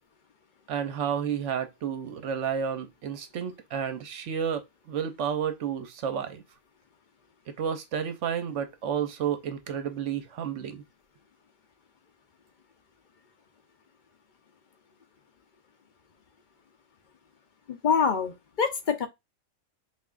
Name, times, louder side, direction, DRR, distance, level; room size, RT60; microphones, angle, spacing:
voice 1, 0.7-6.4 7.5-10.8, right 8 dB, 65° right, 0.9 m, -31 dB
voice 2, 17.7-19.1, left 6 dB, 55° left, 0.5 m, -25 dB
5.8 x 2.5 x 2.4 m
omnidirectional pair, 1.5 m